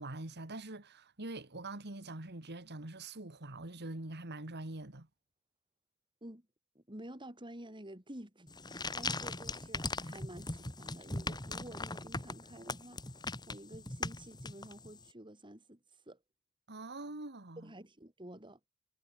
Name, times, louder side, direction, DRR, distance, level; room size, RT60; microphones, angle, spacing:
voice 1, 0.0-5.1 16.7-17.7, right 2 dB, 50° right, 2.4 m, -44 dB
voice 2, 6.7-15.8 16.1-16.2 17.6-18.6, right 1 dB, 20° right, 4.5 m, -50 dB
sound 1, 8.5-15.0, left 3 dB, 20° left, 2.9 m, -40 dB
head